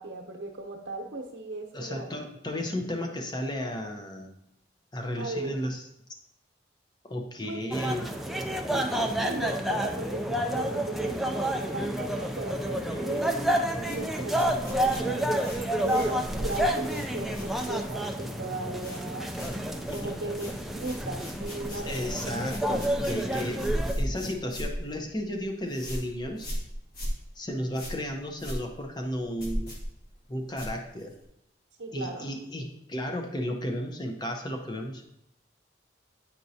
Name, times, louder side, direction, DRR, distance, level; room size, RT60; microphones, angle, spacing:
voice 1, 0.0-2.1 5.2-5.6 7.4-7.6 8.7-13.3 13.7-15.5 15.8-19.3 19.9-22.5 31.8-32.3, right 2 dB, 90° right, -2 dB, 0.8 m, -37 dB
voice 2, 1.7-4.3 4.9-5.9 7.0-8.1 12.7-13.1 19.9-20.1 21.6-23.6 24.0-26.5 27.4-29.7 30.3-31.1 31.9-35.0, equal, 25° left, 3 dB, 0.7 m, -34 dB
sound 1, 7.7-23.9, right 1 dB, ahead, 0.4 m, -30 dB
sound 2, 13.8-18.2 18.4-19.0 19.3-31.3, equal, 50° left, 1.6 m, -37 dB
9.4 x 4.5 x 2.7 m, 0.80 s
head